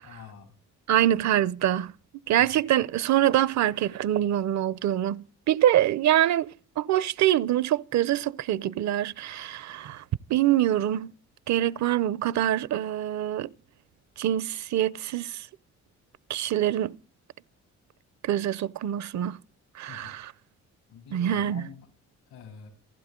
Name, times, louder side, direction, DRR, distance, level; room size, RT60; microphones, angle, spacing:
voice 1, 0.0-0.5 2.4-2.5 19.9-20.1 20.9-21.9 22.3-22.7, left 7 dB, 90° left, 7.8 m, -46 dB
voice 2, 0.9-1.9 2.3-10.0 10.3-11.1 11.5-13.5 14.2-15.5 16.3-17.0 18.2-19.4 19.8-20.3 21.1-21.6, right 12 dB, 65° right, 0.7 m, -25 dB
28.5 x 11.5 x 3.7 m
cardioid pair, 90°, 30 cm